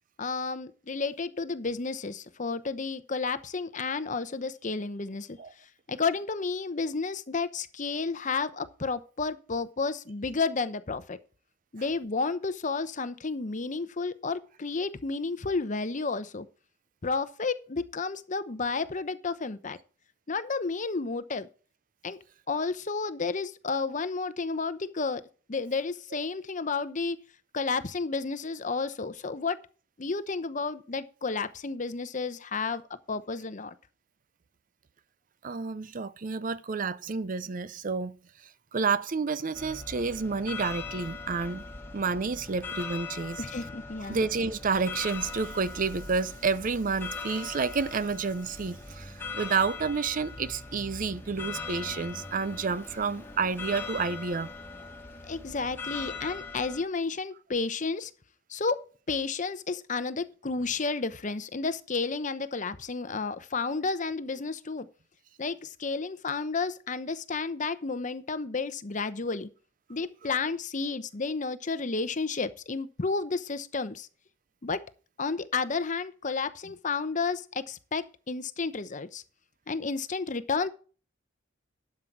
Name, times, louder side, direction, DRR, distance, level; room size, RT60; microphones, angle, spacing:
voice 1, 0.2-5.4 5.9-11.2 11.7-16.5 17.0-19.8 20.3-21.5 22.0-22.2 22.5-25.2 25.5-27.2 27.5-29.6 30.0-32.8 33.1-33.7 43.4-44.2 55.3-58.1 58.5-64.9 65.4-69.5 69.9-74.1 74.6-74.8 75.2-79.2 79.7-80.7, left 4 dB, 40° left, 0.8 m, -31 dB
voice 2, 35.4-43.4 44.1-54.5, right 4 dB, 45° right, 0.6 m, -30 dB
sound 1, 39.5-56.8, left 4 dB, 10° left, 3.6 m, -40 dB
12.0 x 7.5 x 4.7 m
head